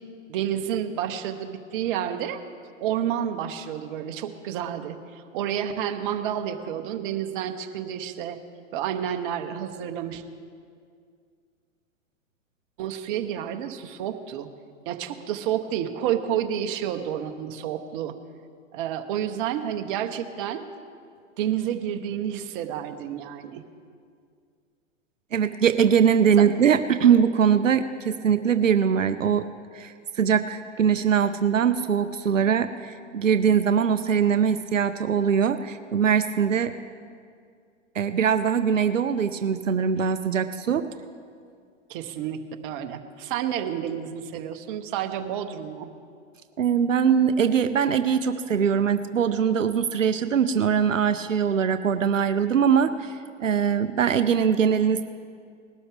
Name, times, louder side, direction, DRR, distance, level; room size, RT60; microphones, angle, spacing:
voice 1, 0.3-2.4 2.8-8.4 8.7-10.2 12.8-14.5 14.9-18.2 18.7-20.6 21.4-23.6 26.4-26.5 41.9-45.9, right 10 dB, 45° right, 7 dB, 1.0 m, -30 dB
voice 2, 25.3-29.5 29.7-36.7 37.9-40.9 46.6-55.0, right 7 dB, 90° right, 10 dB, 0.6 m, -22 dB
19.5 x 12.5 x 3.5 m, 2.2 s
hypercardioid pair, 110°, 38 cm